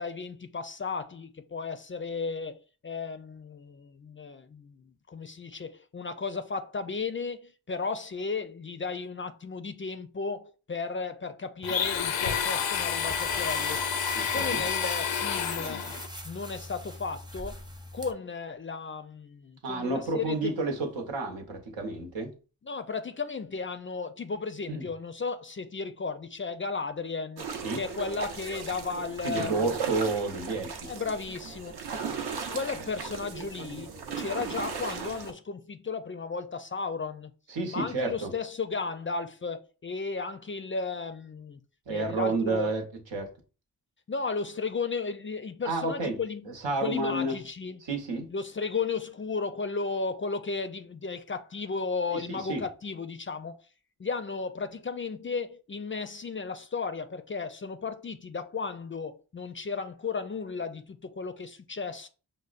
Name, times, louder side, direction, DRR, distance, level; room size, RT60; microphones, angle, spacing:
voice 1, 0.0-13.9 14.2-15.9 16.2-17.6 17.9-20.6 22.6-27.5 27.8-29.7 30.9-31.8 32.5-37.3 37.7-41.6 41.9-42.7 44.1-46.4 46.8-47.8 48.3-53.6 54.0-62.1, left 4 dB, 30° left, 0.4 m, -34 dB
Domestic sounds home sounds, 11.6-16.1, left 7 dB, 90° left, 0.5 m, -29 dB
sound 1, 12.7-18.1, equal, 10° right, 0.6 m, -41 dB
voice 2, 14.1-14.6 19.6-22.3 24.7-24.9 27.6-27.8 29.2-30.9 37.5-38.3 41.9-42.8 43.1-43.3 45.6-46.2 46.4-47.4 47.8-48.3 52.1-52.6, right 3 dB, 85° right, 0.9 m, -30 dB
sound 2, 27.4-35.3, right 6 dB, 60° right, 0.7 m, -37 dB
5.2 x 2.1 x 2.4 m
cardioid pair, 45°, 44 cm